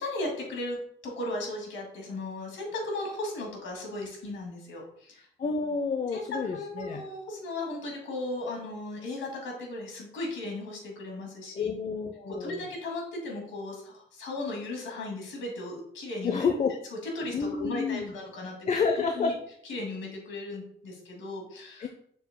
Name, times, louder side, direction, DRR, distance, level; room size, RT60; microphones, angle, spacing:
voice 1, 0.0-5.3 6.1-11.7 12.3-16.5 17.0-18.7 19.1-19.3 19.7-21.9, left 2 dB, 75° left, 0 dB, 2.3 m, -36 dB
voice 2, 5.4-7.0 11.5-12.7 16.2-16.7 17.3-18.1 18.7-19.3 21.8-21.9, left 5 dB, 35° left, 4 dB, 0.6 m, -29 dB
6.9 x 6.7 x 2.2 m, 0.67 s
cardioid pair, 90°, 20 cm